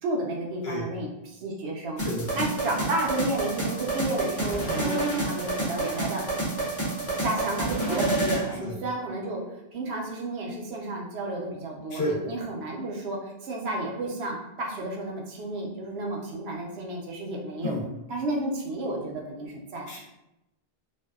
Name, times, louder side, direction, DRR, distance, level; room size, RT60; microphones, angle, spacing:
voice 1, 0.0-2.0 2.3-6.2 7.2-9.4 9.7-17.8 18.1-19.9, right 2 dB, 80° right, -1 dB, 0.8 m, -32 dB
voice 2, 2.0-2.3 8.5-8.7 11.9-12.1 17.6-17.8 19.9-20.0, left 1 dB, 75° left, -2 dB, 0.9 m, -30 dB
sound 1, 2.0-8.5, right 2 dB, 15° left, 0.7 m, -28 dB
2.6 x 2.1 x 2.2 m, 0.90 s
omnidirectional pair, 1.0 m